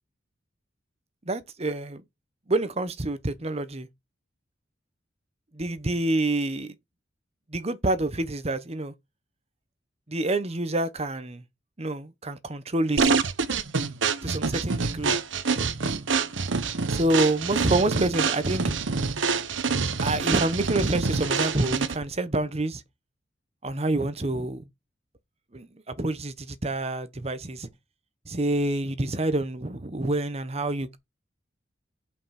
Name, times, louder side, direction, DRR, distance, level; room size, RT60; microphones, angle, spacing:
voice 1, 1.3-2.0 2.5-3.9 5.5-6.7 7.5-8.9 10.1-11.4 11.8-13.1 14.2-15.2 16.9-18.8 20.0-22.8 23.6-24.7 25.5-27.7 28.3-31.0, right 2 dB, 35° right, 1.0 m, -27 dB
sound 1, 13.0-22.1, right 4 dB, 80° right, 1.0 m, -26 dB
7.4 x 5.6 x 5.9 m
head